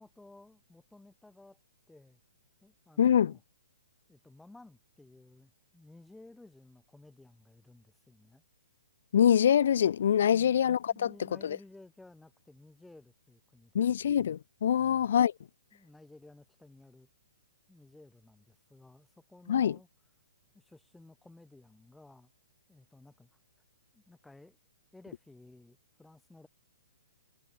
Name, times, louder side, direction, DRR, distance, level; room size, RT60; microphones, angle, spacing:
voice 1, 0.0-1.6 1.9-2.2 2.6-3.4 4.1-8.4 10.2-13.8 14.7-15.1 15.7-17.1 17.7-19.9 20.5-22.3 22.7-23.4 23.9-24.6 24.9-26.5, left 2 dB, 5° left, 6.6 m, -56 dB
voice 2, 3.0-3.3 9.1-11.1 13.7-15.3 19.5-19.7, left 9 dB, 60° left, 1.2 m, -24 dB
hypercardioid pair, 165°, 0 cm